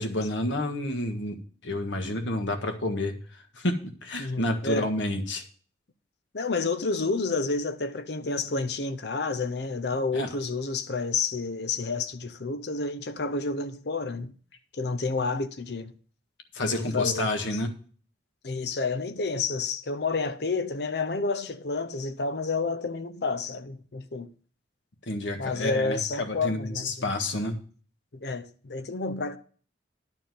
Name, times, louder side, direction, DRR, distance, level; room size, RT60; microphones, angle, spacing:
voice 1, 0.0-1.4 1.6-3.2 3.6-5.4 10.1-10.3 16.5-17.7 25.1-27.6, left 1 dB, 85° left, 1.5 m, -29 dB
voice 2, 4.2-4.9 6.3-14.3 14.7-15.9 16.7-17.3 18.4-24.3 25.4-27.2 28.1-29.4, left 3 dB, 60° left, 0.7 m, -30 dB
11.0 x 4.5 x 7.6 m
head